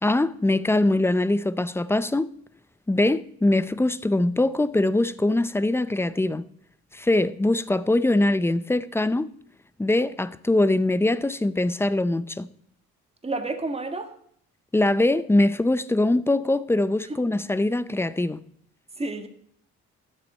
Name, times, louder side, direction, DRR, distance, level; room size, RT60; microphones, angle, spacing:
voice 1, 0.0-2.3 2.9-6.5 6.9-9.3 9.8-12.5 14.7-18.4, left 2 dB, 10° left, 0.5 m, -22 dB
voice 2, 13.2-14.1 19.0-19.3, right 2 dB, 20° right, 1.6 m, -30 dB
12.0 x 7.6 x 5.5 m
cardioid pair, 90°, 30 cm